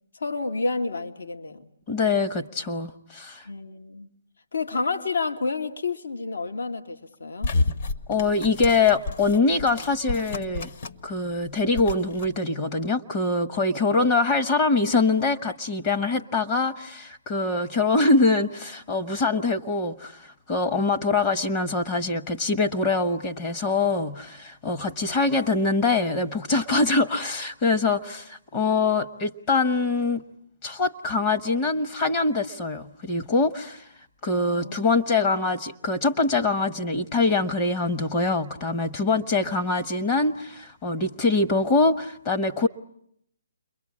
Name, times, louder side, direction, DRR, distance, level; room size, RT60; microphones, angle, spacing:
voice 1, 0.1-1.7 3.5-4.1 4.5-7.5 13.8-14.1 24.9-25.2 34.3-34.8 39.4-39.5, left 3 dB, 75° left, 5 dB, 1.7 m, -30 dB
voice 2, 1.9-3.5 8.1-10.7 11.0-30.2 30.6-33.9 34.2-42.7, left 3 dB, 30° left, 6 dB, 1.1 m, -24 dB
sound 1, 7.4-11.1 11.4-12.3, left 3 dB, 50° left, 1.4 m, -30 dB
30.0 x 23.0 x 8.6 m, 0.72 s
hypercardioid pair, 150°, 0 cm